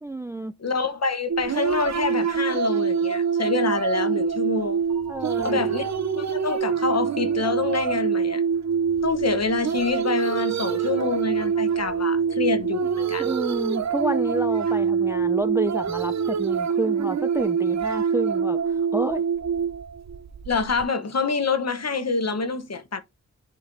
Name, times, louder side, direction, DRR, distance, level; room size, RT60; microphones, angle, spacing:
voice 1, 0.0-0.5 5.1-5.6 13.2-19.2, right 2 dB, 10° right, 0.3 m, -29 dB
voice 2, 0.6-4.8 5.4-5.9 6.2-8.4 9.0-13.3 20.5-23.0, left 4 dB, 50° left, 1.0 m, -26 dB
sound 1, 1.3-20.8, right 6 dB, 55° right, 0.6 m, -25 dB
sound 2, 4.9-16.9, right 3 dB, 80° right, 2.3 m, -50 dB
10.5 x 4.0 x 2.6 m
cardioid pair, 45°, 34 cm